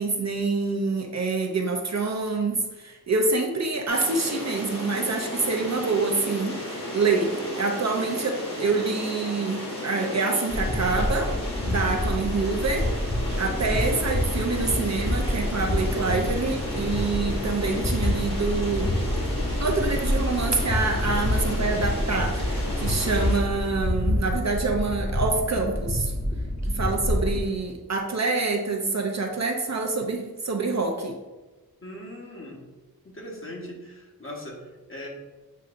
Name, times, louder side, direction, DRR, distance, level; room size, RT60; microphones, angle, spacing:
voice 1, 0.0-11.3 11.7-12.9 13.3-18.9 19.6-26.1 26.6-31.2, right 3 dB, 45° right, 2 dB, 0.6 m, -26 dB
sound 1, 3.9-23.4, left 1 dB, 85° left, 1.5 m, -34 dB
sound 2, 10.5-27.4, left 1 dB, 15° left, 1.0 m, -27 dB
voice 2, 31.8-32.6 33.0-35.1, left 1 dB, 35° left, -2 dB, 1.2 m, -40 dB
7.4 x 2.7 x 2.5 m, 1.2 s
wide cardioid pair, 60°, 38 cm